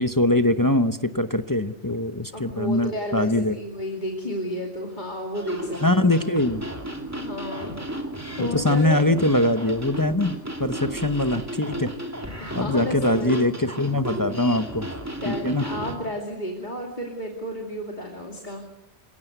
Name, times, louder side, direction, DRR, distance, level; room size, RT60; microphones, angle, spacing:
voice 1, 0.0-3.6 5.8-6.6 8.4-11.9 12.5-14.9 15.2-15.7, left 1 dB, 20° left, 9 dB, 0.8 m, -22 dB
voice 2, 2.3-6.1 7.2-7.8 8.4-9.0 10.7-11.0 12.4-13.6 15.1-18.8, left 1 dB, 40° left, 1 dB, 2.8 m, -32 dB
sound 1, 5.3-16.0, right 1 dB, 15° right, 2.7 m, -34 dB
28.0 x 17.5 x 8.0 m, 0.91 s
omnidirectional pair, 1.2 m